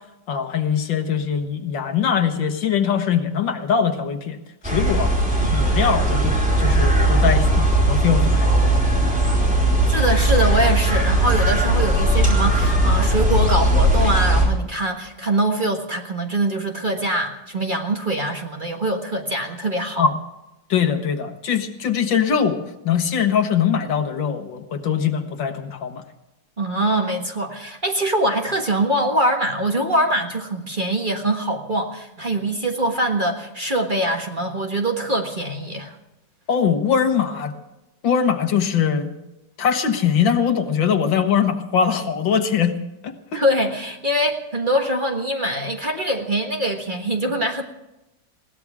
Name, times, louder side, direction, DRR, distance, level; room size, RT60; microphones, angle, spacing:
voice 1, 0.3-5.1 5.5-8.8 20.0-20.1 20.7-22.6 22.8-26.0 36.5-37.5 38.0-39.1 39.6-42.7 43.0-43.4, left 7 dB, 75° left, 7 dB, 2.0 m, -22 dB
sound 1, 4.6-14.5, right 1 dB, 5° right, 4.6 m, -18 dB
voice 2, 9.9-20.0 26.6-35.9 43.3-47.6, right 1 dB, 25° right, 2 dB, 1.6 m, -23 dB
21.5 x 17.0 x 3.6 m, 0.96 s
omnidirectional pair, 2.1 m